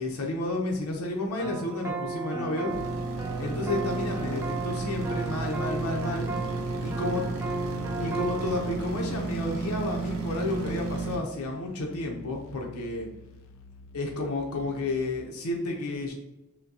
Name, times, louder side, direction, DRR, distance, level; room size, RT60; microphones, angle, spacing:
voice 1, 0.0-2.7 3.4-6.3 6.8-7.2 8.0-13.1 13.9-16.1, left 2 dB, 85° left, 0 dB, 0.7 m, -31 dB
sound 1, 1.4-8.8, right 3 dB, 10° right, 0.4 m, -34 dB
sound 2, 2.7-11.2, right 3 dB, 65° right, 0.8 m, -33 dB
sound 3, 4.4-15.1, left 2 dB, 65° left, 0.3 m, -49 dB
5.7 x 2.2 x 2.7 m, 0.94 s
head